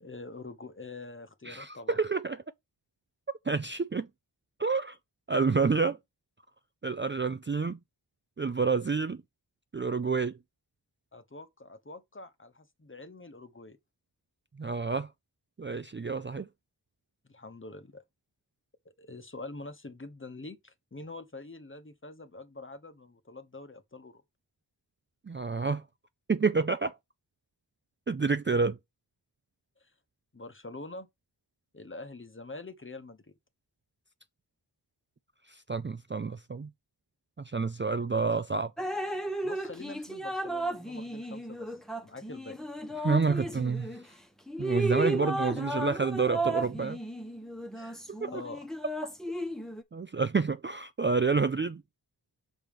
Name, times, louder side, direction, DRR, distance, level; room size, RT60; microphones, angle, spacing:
voice 1, 0.0-2.0 11.1-13.8 17.2-18.0 18.8-24.2 29.8-29.9 30.3-31.1 31.7-33.3 39.4-42.6 47.7-48.7, left 3 dB, 25° left, 1.0 m, -45 dB
voice 2, 1.5-2.4 3.5-4.1 4.6-5.0 5.3-6.0 6.8-7.8 8.4-9.2 9.7-10.4 14.6-15.1 15.6-16.5 25.3-25.8 26.3-26.9 28.1-28.8 35.5-36.7 37.4-38.7 43.0-44.0 44.6-47.0 48.2-48.3 49.9-51.8, right 4 dB, 25° right, 0.4 m, -28 dB
Drip, 38.8-44.0 44.5-49.8, right 1 dB, ahead, 1.0 m, -34 dB
6.0 x 3.5 x 5.2 m
wide cardioid pair, 55°, 44 cm